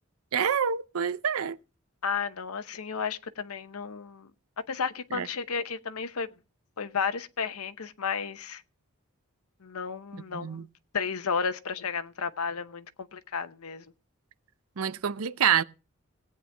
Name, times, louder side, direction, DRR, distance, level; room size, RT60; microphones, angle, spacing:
voice 1, 0.3-1.6 5.1-5.3 10.1-10.7 14.8-15.6, right 8 dB, 85° right, 0.6 m, -27 dB
voice 2, 2.0-4.3 4.7-6.3 6.8-8.6 9.6-10.7 10.9-12.9 13.1-13.8, left 6 dB, 90° left, 0.8 m, -32 dB
17.5 x 8.9 x 3.4 m
head